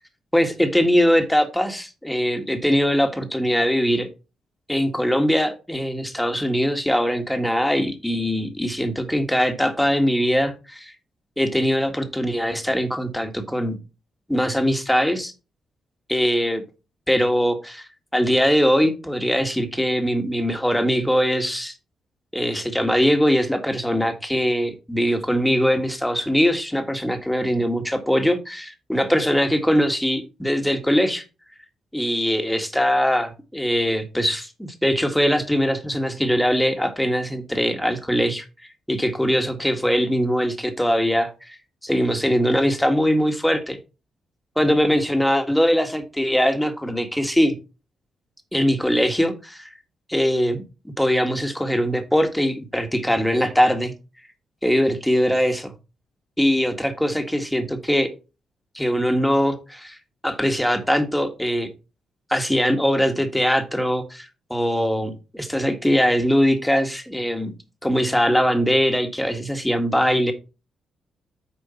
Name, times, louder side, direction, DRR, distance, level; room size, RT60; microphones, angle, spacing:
voice 1, 0.3-4.1 4.7-10.9 11.4-13.8 14.3-15.3 16.1-16.6 17.1-21.7 22.3-31.2 31.9-38.5 38.9-41.6 41.8-43.8 44.6-47.6 48.5-49.7 50.1-50.6 51.0-53.9 54.6-55.7 56.4-58.1 58.7-60.0 60.2-61.7 62.3-67.5 67.8-70.3, equal, 5° left, 1.8 m, -21 dB
9.2 x 5.0 x 4.3 m
cardioid pair, 100°, 0 cm